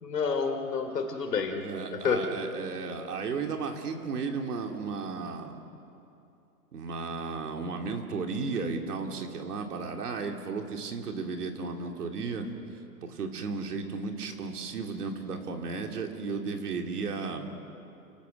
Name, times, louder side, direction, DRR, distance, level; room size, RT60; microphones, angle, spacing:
voice 1, 0.0-2.3, left 5 dB, 85° left, 5 dB, 3.1 m, -29 dB
voice 2, 1.6-5.6 6.7-12.5 13.0-17.5, right 4 dB, 75° right, 3 dB, 3.0 m, -34 dB
29.5 x 18.0 x 6.5 m, 2.7 s
hypercardioid pair, 135°, 47 cm